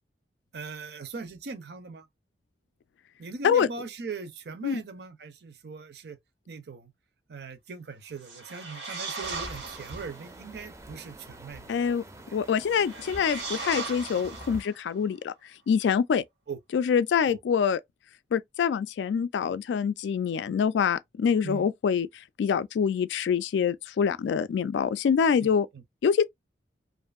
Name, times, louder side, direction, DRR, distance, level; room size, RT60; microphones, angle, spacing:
voice 1, 0.5-2.1 3.2-6.2 6.5-6.9 7.3-12.0 16.5-16.6 17.2-17.4 21.4-21.6 25.4-25.8, right 4 dB, 65° right, 0.6 m, -40 dB
sound 1, 8.2-10.2 12.6-14.9, right 4 dB, 90° right, 1.5 m, -38 dB
sound 2, 9.2-14.6, right 1 dB, 15° right, 0.4 m, -46 dB
voice 2, 11.7-12.0 12.3-15.3 15.7-16.2 16.7-17.8 18.3-22.1 22.4-25.7 26.0-26.2, left 7 dB, 80° left, 0.3 m, -25 dB
2.6 x 2.5 x 2.3 m
head